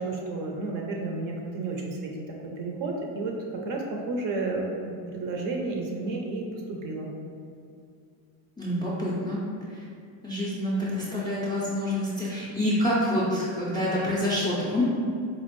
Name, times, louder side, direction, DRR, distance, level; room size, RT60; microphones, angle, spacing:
voice 1, 0.0-7.1, right 3 dB, 45° right, 0 dB, 0.5 m, -32 dB
voice 2, 8.6-9.4 9.7-9.8 10.2-14.8, left 1 dB, 10° left, -9 dB, 0.3 m, -27 dB
4.1 x 2.4 x 3.0 m, 2.4 s
cardioid pair, 135°, 49 cm